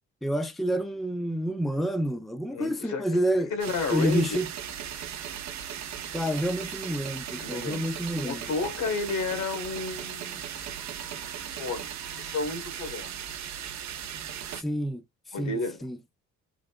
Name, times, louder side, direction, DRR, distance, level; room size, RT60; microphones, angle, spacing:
voice 1, 0.2-3.5 3.9-4.5 6.1-8.5 14.6-15.0 15.3-16.0, equal, ahead, 0.5 m, -28 dB
voice 2, 2.5-3.0 3.5-4.4 7.4-8.0 8.2-10.4 11.6-13.1 15.3-15.8, left 3 dB, 75° left, 1.5 m, -31 dB
sound 1, 3.6-14.6, right 9 dB, 65° right, 0.8 m, -37 dB
3.8 x 2.1 x 3.4 m
cardioid pair, 90°, 30 cm